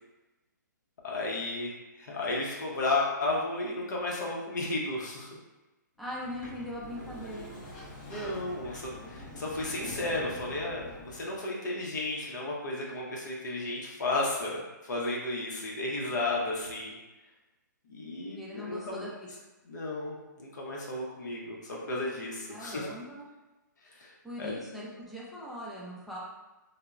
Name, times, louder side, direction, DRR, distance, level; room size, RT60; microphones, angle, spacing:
voice 1, 1.0-5.3 8.0-17.0 17.9-19.1 19.6-22.9 23.8-24.5, left 2 dB, 65° left, -3 dB, 0.6 m, -33 dB
Sliding door, 6.0-11.4, left 1 dB, 30° left, 0.7 m, -44 dB
voice 2, 6.0-7.6 18.3-19.1 22.5-23.3 24.2-26.2, left 1 dB, ahead, -7 dB, 0.3 m, -40 dB
2.9 x 2.0 x 2.3 m, 1.1 s
hypercardioid pair, 145°, 11 cm